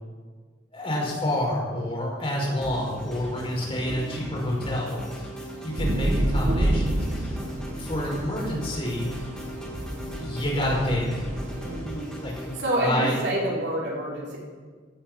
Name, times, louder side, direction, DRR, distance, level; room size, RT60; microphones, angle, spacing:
voice 1, 0.7-5.3 5.6-7.4 7.8-9.1 10.2-11.1 12.2-12.3 12.8-13.2, left 1 dB, 30° left, -3 dB, 5.3 m, -28 dB
sound 1, 2.6-12.6, equal, 5° left, 3.1 m, -38 dB
sound 2, 5.8-11.8, right 1 dB, 40° right, 1.3 m, -29 dB
voice 2, 11.6-12.1 12.6-14.4, right 1 dB, 65° right, -5 dB, 5.2 m, -27 dB
16.5 x 9.0 x 7.5 m, 1.5 s
head